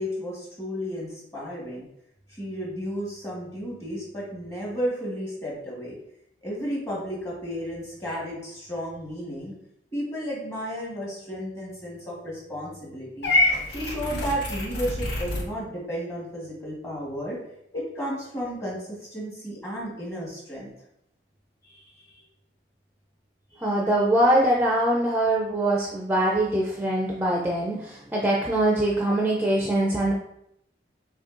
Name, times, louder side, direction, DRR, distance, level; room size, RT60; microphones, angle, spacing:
voice 1, 0.0-1.9 2.3-6.0 6.4-9.5 9.9-13.3 13.7-17.4 17.7-20.7 21.6-22.1, equal, 15° left, -4 dB, 1.4 m, -33 dB
Purr / Meow, 13.2-15.5, left 1 dB, 80° left, 0.8 m, -26 dB
voice 2, 23.6-30.1, right 1 dB, 10° right, -3 dB, 0.4 m, -23 dB
6.3 x 2.7 x 2.5 m, 0.75 s
head